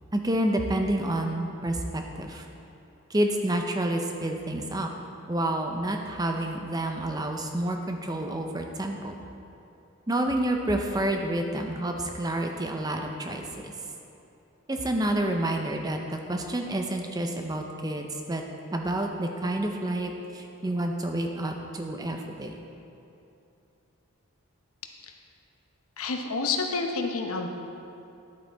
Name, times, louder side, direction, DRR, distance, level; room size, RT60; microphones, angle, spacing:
voice 1, 0.1-2.4 3.1-4.9 5.3-9.1 10.1-13.7 14.7-18.4 18.7-22.5, right 1 dB, 15° right, 3 dB, 0.5 m, -29 dB
voice 2, 26.0-27.5, left 4 dB, 75° left, 4 dB, 0.8 m, -29 dB
10.5 x 8.4 x 3.4 m, 2.8 s
head